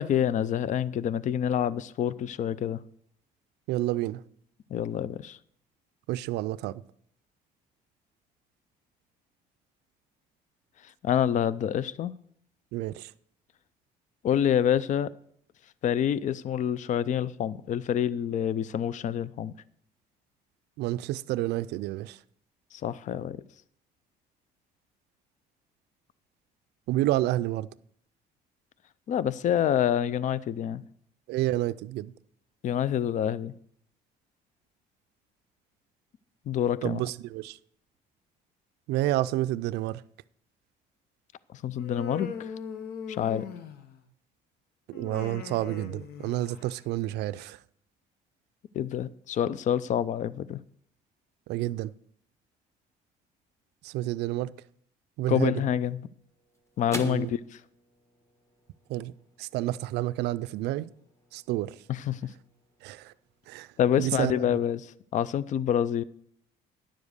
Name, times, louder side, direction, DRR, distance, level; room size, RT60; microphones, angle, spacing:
voice 1, 0.0-2.8 4.7-5.4 11.0-12.1 14.2-15.1 15.8-19.5 22.7-23.4 29.1-30.8 32.6-33.5 36.5-37.0 41.6-42.5 43.1-43.5 48.7-50.6 55.3-56.1 56.8-57.4 61.9-62.3 63.8-66.0, left 9 dB, 45° left, 0.4 m, -27 dB
voice 2, 3.7-4.2 6.1-6.8 12.7-13.1 20.8-22.2 26.9-27.7 31.3-32.1 36.8-37.6 38.9-40.0 44.9-47.6 51.5-51.9 53.8-54.5 55.2-55.5 57.0-57.3 58.9-59.1 59.4-60.9 61.3-61.7 62.8-63.1 63.5-63.7 64.0-64.3, right 15 dB, 80° right, 0.4 m, -29 dB
Human voice, 41.8-44.0 44.9-46.8, left 5 dB, 70° left, 1.0 m, -40 dB
sound 1, 55.6-64.2, left 1 dB, 15° left, 1.5 m, -47 dB
10.5 x 7.2 x 6.5 m
cardioid pair, 110°, 17 cm